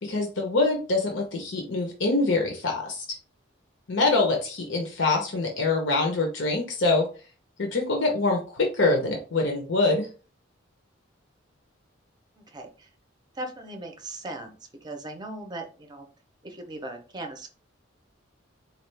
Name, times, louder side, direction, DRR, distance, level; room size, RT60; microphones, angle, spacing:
voice 1, 0.0-3.0 3.9-7.1 7.6-10.1, left 3 dB, 65° left, 1 dB, 0.8 m, -24 dB
voice 2, 12.4-12.9 13.3-14.5 14.8-16.0 16.4-17.5, right 1 dB, 20° right, 4 dB, 0.7 m, -38 dB
4.3 x 2.4 x 3.3 m, 0.36 s
head